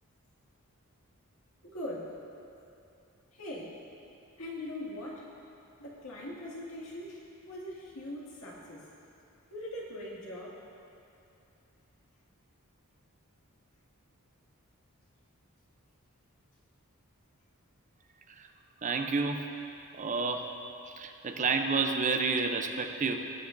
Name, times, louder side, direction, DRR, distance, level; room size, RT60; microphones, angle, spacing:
voice 1, 1.6-2.1 3.3-3.7 4.4-5.3 5.8-8.8 9.5-10.6, left 1 dB, 70° left, -5 dB, 2.1 m, -41 dB
voice 2, 18.8-19.5 19.9-20.5 20.9-23.2, right 4 dB, 35° right, 5 dB, 0.5 m, -30 dB
18.5 x 8.2 x 2.6 m, 2.7 s
head